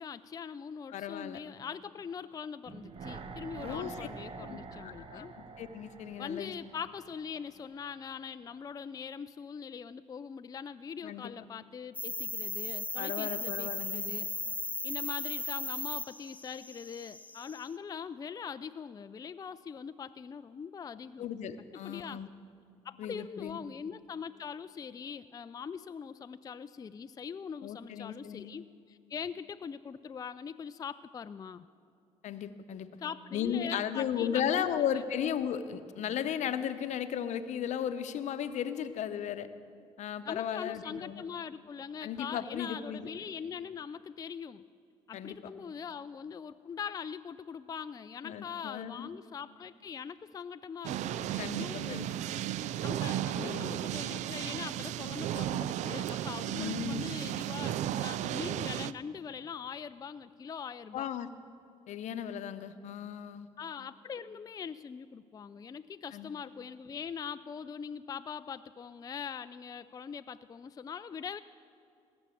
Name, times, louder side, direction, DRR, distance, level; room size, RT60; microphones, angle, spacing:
voice 1, 0.0-5.4 6.2-14.3 14.8-21.3 21.8-22.3 22.8-31.7 33.0-34.7 40.2-44.6 45.1-52.1 52.8-61.1 63.6-71.4, left 7 dB, 30° left, 12 dB, 0.4 m, -42 dB
voice 2, 0.9-1.4 3.6-3.9 4.5-5.3 5.6-6.5 11.0-11.3 13.0-14.1 21.2-22.3 23.0-23.6 27.6-28.5 32.2-32.9 33.3-39.5 40.0-41.3 42.0-43.1 45.1-45.4 48.2-49.1 51.4-52.2 53.4-53.8 56.6-57.1 60.9-61.3 61.9-63.5 66.1-66.3, left 9 dB, 65° left, 11 dB, 0.8 m, -35 dB
sound 1, 2.7-7.8 8.1-8.2, right 4 dB, 45° right, 1.0 m, -46 dB
sound 2, 11.9-17.7, left 2 dB, 10° left, 0.7 m, -37 dB
sound 3, 50.8-58.9, right 12 dB, 70° right, 0.4 m, -34 dB
18.5 x 7.1 x 8.4 m, 2.5 s
supercardioid pair, 65°, 13 cm